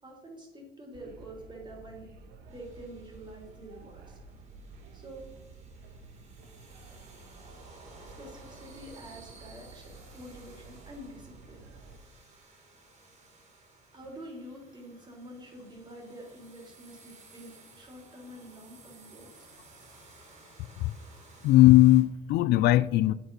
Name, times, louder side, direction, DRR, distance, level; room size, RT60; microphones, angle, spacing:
voice 1, 0.0-2.1 2.4-4.2 4.9-5.2 8.0-11.6 13.9-19.5, right 1 dB, 25° right, 3.4 m, -47 dB
sound 1, 0.9-12.0, right 3 dB, 80° right, 1.6 m, -51 dB
sound 2, 2.5-22.0, right 3 dB, 45° right, 3.6 m, -56 dB
voice 2, 21.4-23.1, left 16 dB, 80° left, 0.4 m, -19 dB
8.4 x 7.8 x 5.4 m
cardioid pair, 110°, 17 cm